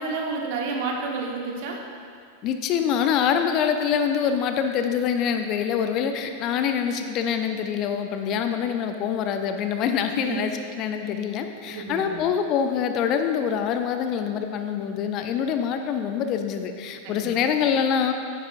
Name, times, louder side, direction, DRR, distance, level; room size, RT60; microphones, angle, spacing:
voice 1, 0.0-1.8 10.2-10.4 11.7-12.2 17.0-17.4, right 4 dB, 50° right, 0 dB, 1.3 m, -30 dB
voice 2, 2.4-18.1, left 7 dB, 35° left, 7 dB, 0.5 m, -25 dB
10.5 x 8.9 x 2.6 m, 2.2 s
figure-of-eight pair, 90°, 0 cm